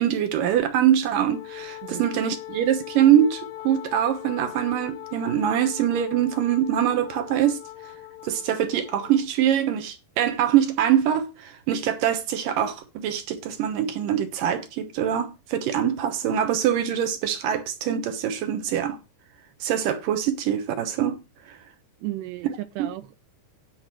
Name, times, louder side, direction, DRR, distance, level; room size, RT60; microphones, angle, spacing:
voice 1, 0.0-7.6 8.2-19.0 19.6-21.2 21.5-21.6, right 10 dB, 70° right, 2.3 m, -23 dB
Wind instrument woodwind instrument, 1.3-9.3, left 15 dB, 90° left, 3.1 m, -40 dB
voice 2, 22.0-23.2, right 16 dB, 85° right, 2.9 m, -34 dB
10.5 x 5.0 x 7.5 m
omnidirectional pair, 4.9 m